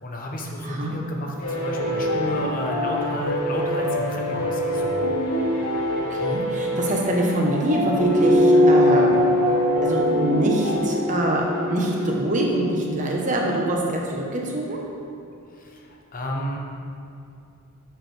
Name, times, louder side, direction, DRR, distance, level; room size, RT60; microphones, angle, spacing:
voice 1, 0.0-5.0 15.6-16.6, left 1 dB, 40° left, 0 dB, 0.9 m, -31 dB
voice 2, 0.6-0.9 6.1-9.2 9.8-11.4 11.7-14.8, right 1 dB, 35° right, -1 dB, 1.1 m, -24 dB
sound 1, 1.4-12.1, equal, 85° left, 1.4 m, -26 dB
sound 2, 8.1-12.9, left 1 dB, 10° right, 0.3 m, -21 dB
11.0 x 6.5 x 3.4 m, 2.6 s
head